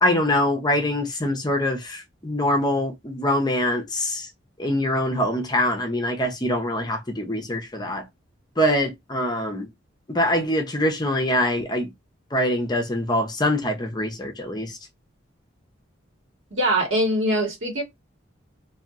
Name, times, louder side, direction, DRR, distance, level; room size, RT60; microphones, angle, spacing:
voice 1, 0.0-4.3 4.6-8.0 8.6-9.7 10.1-11.9 12.3-14.8, left 1 dB, 20° left, 0.6 m, -24 dB
voice 2, 16.5-17.8, right 1 dB, 80° right, 1.5 m, -22 dB
2.8 x 2.6 x 2.4 m
head